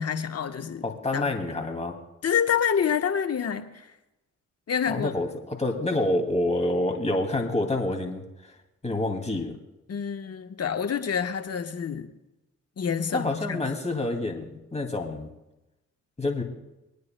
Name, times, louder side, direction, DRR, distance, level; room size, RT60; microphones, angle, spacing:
voice 1, 0.0-0.9 1.1-1.3 2.2-3.9 4.7-5.2 9.9-12.1 12.8-13.6, left 7 dB, 45° left, 8 dB, 1.2 m, -27 dB
voice 2, 0.8-2.0 4.9-8.2 8.8-9.6 13.1-15.3 16.2-16.4, left 2 dB, 20° left, 2 dB, 2.4 m, -27 dB
25.0 x 9.5 x 2.2 m, 0.96 s
supercardioid pair, 60°, 33 cm